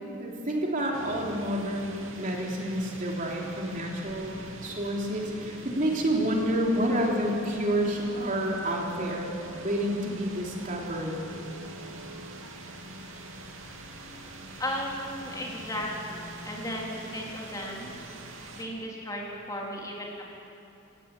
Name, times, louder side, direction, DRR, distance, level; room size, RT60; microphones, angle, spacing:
voice 1, 0.2-9.3 9.6-11.1, equal, 40° right, -1 dB, 3.3 m, -29 dB
sound 1, 0.9-18.6, right 2 dB, 70° right, 2.9 m, -44 dB
voice 2, 14.6-17.9 18.6-20.3, equal, 15° left, -2 dB, 3.6 m, -35 dB
27.0 x 17.5 x 8.4 m, 2.7 s
head